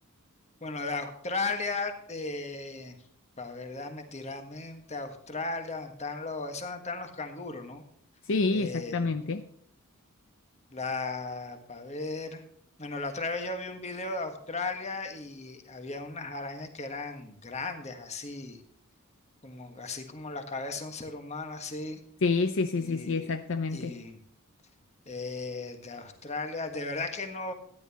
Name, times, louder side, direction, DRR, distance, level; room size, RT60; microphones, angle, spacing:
voice 1, 0.6-3.0 3.4-7.8 8.5-9.1 10.7-12.4 12.8-18.6 19.4-22.0 22.8-23.3 23.7-24.2 25.0-27.5, left 3 dB, 30° left, 6 dB, 1.5 m, -36 dB
voice 2, 8.3-9.4 22.2-24.0, left 3 dB, 60° left, 8 dB, 0.6 m, -28 dB
13.5 x 10.5 x 2.9 m, 0.67 s
head